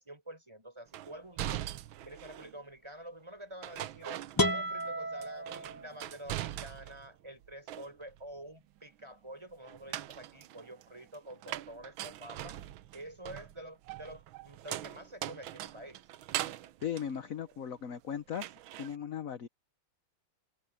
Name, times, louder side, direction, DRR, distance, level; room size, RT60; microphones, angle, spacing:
voice 1, 0.0-1.7 2.0-4.2 4.5-12.6 12.9-16.0, right 1 dB, 15° right, 5.0 m, -48 dB
sound 1, 0.9-2.6 3.6-4.9 5.2-7.1 7.4-8.3 9.6-18.0 18.3-19.0, right 13 dB, 80° right, 1.5 m, -41 dB
sound 2, 4.4-6.3, left 1 dB, 15° left, 0.9 m, -33 dB
voice 2, 16.8-18.5 18.8-19.5, left 8 dB, 50° left, 1.1 m, -37 dB
open air
omnidirectional pair, 2.2 m